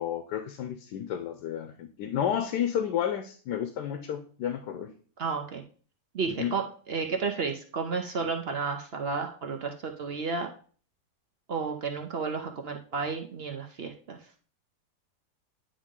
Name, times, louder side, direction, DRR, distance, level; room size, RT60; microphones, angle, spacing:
voice 1, 0.0-4.9 6.3-6.5, left 9 dB, 85° left, 7 dB, 1.2 m, -31 dB
voice 2, 5.2-5.6 6.1-6.6 6.9-10.5 11.5-14.2, right 5 dB, 60° right, 4 dB, 0.6 m, -32 dB
9.7 x 3.6 x 3.6 m, 0.43 s
omnidirectional pair, 1.8 m